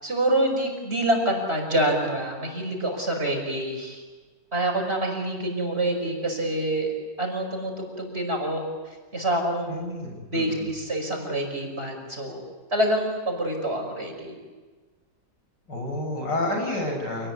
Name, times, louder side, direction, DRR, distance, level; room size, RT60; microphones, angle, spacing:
voice 1, 0.0-4.0 4.5-6.9 7.2-8.6 9.1-9.8 10.3-12.4 12.7-14.4, right 1 dB, 35° right, 2 dB, 5.8 m, -26 dB
voice 2, 9.7-10.7 15.7-17.3, left 1 dB, 70° left, 2 dB, 7.2 m, -30 dB
28.5 x 20.0 x 9.9 m, 1.4 s
omnidirectional pair, 2.0 m